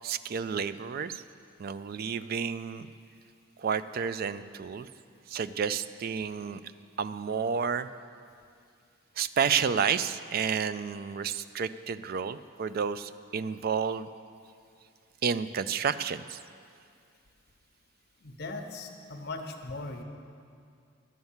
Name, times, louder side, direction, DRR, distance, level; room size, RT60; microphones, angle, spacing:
voice 1, 0.0-1.2 1.6-2.9 3.6-4.9 5.3-6.6 7.0-7.9 9.2-14.1 15.2-16.4, right 6 dB, 50° right, 14 dB, 0.3 m, -30 dB
voice 2, 18.2-20.0, left 2 dB, 55° left, 4 dB, 0.8 m, -39 dB
10.5 x 7.9 x 7.2 m, 2.3 s
head